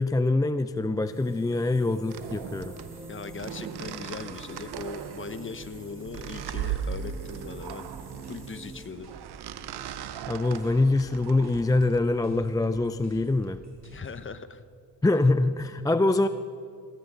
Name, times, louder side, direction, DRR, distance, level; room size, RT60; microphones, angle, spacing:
voice 1, 0.0-2.7 10.3-13.6 15.0-16.3, left 2 dB, 10° left, 12 dB, 0.4 m, -24 dB
sound 1, 1.0-8.9, right 2 dB, 5° right, 3.3 m, -46 dB
sound 2, 2.1-12.0, right 9 dB, 90° right, 0.7 m, -38 dB
voice 2, 3.1-7.9 8.3-9.1 13.8-14.6, left 5 dB, 30° left, 12 dB, 0.9 m, -39 dB
sound 3, 7.8-14.2, right 1 dB, 45° right, 3.6 m, -53 dB
19.0 x 13.0 x 3.8 m, 2.3 s
cardioid pair, 70°, 38 cm